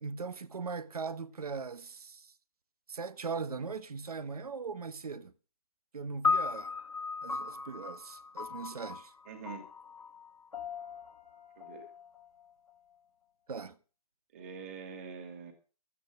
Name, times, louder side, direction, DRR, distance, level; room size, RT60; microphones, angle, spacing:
voice 1, 0.0-2.3 2.9-5.3 5.9-6.7 7.2-9.1 13.5-13.8, right 5 dB, 70° right, 1.5 m, -39 dB
sound 1, 6.2-12.7, left 4 dB, 70° left, 1.6 m, -36 dB
voice 2, 9.3-9.6 11.6-11.9 14.3-15.5, right 5 dB, 20° right, 2.7 m, -44 dB
13.5 x 9.4 x 6.3 m
hypercardioid pair, 175°, 20 cm